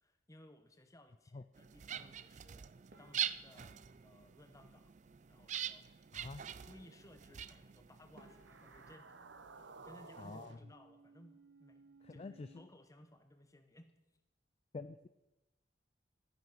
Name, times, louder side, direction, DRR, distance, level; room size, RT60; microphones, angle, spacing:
voice 1, 0.0-2.7 3.0-4.9 5.3-6.1 6.7-9.2 9.5-13.9, left 1 dB, 20° left, 8 dB, 1.0 m, -61 dB
sound 1, 1.6-9.0, right 10 dB, 40° right, 0.4 m, -44 dB
sound 2, 2.9-5.4 7.6-7.7 8.2-10.9 11.2-12.0 12.3-12.5 12.8-12.9 13.5-13.8, right 1 dB, 55° right, 2.1 m, -68 dB
voice 2, 6.1-6.5 10.2-10.6 12.0-12.6 14.7-15.1, left 3 dB, 35° left, 11 dB, 0.4 m, -47 dB
sound 3, 8.3-12.7, right 3 dB, 75° right, 0.9 m, -56 dB
12.5 x 10.5 x 5.7 m, 0.96 s
head